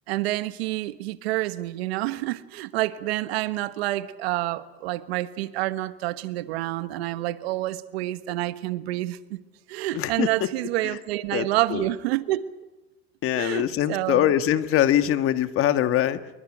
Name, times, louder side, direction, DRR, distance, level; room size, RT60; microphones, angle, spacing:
voice 1, 0.1-9.4 9.7-12.5 13.4-14.3, right 16 dB, 85° right, 1.4 m, -28 dB
voice 2, 9.9-10.5 10.8-11.0 11.3-11.9 13.2-16.2, left 11 dB, 45° left, 1.6 m, -23 dB
28.0 x 23.5 x 6.2 m
supercardioid pair, 120°, 30 cm